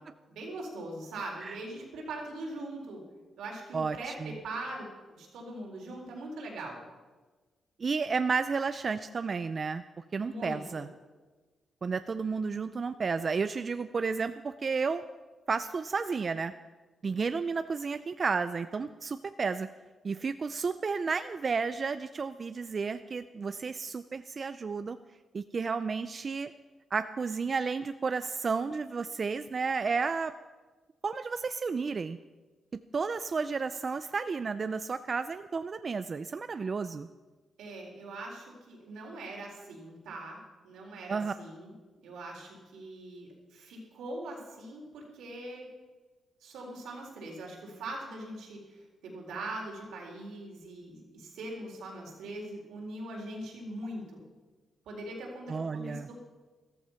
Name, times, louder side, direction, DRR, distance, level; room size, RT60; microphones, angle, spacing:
voice 1, 0.3-3.0 3.4-6.8 10.2-10.8 37.6-40.4 40.6-41.7 42.0-45.7 46.4-54.2 54.9-56.1, right 2 dB, 90° right, -1 dB, 4.2 m, -41 dB
voice 2, 3.7-4.4 7.8-9.8 10.1-10.9 11.8-15.0 15.5-16.5 17.0-19.7 20.0-25.0 25.3-26.5 26.9-30.3 31.0-32.2 32.7-37.1 41.1-41.3 55.5-56.1, right 5 dB, 45° right, 11 dB, 0.5 m, -32 dB
14.5 x 13.5 x 5.8 m, 1.3 s
cardioid pair, 85°, 0 cm